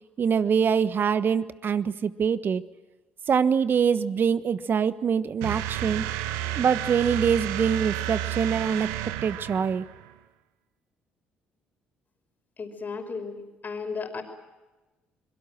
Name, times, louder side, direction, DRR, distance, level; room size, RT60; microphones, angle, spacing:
voice 1, 0.2-2.6 3.3-6.0 6.5-8.9 9.2-9.8, right 7 dB, 50° right, 13 dB, 1.3 m, -24 dB
sound 1, 5.4-10.1, right 13 dB, 80° right, 1.2 m, -31 dB
voice 2, 12.6-14.2, left 5 dB, 40° left, 4 dB, 5.4 m, -34 dB
25.5 x 22.5 x 7.6 m, 1.1 s
hypercardioid pair, 55°, 5 cm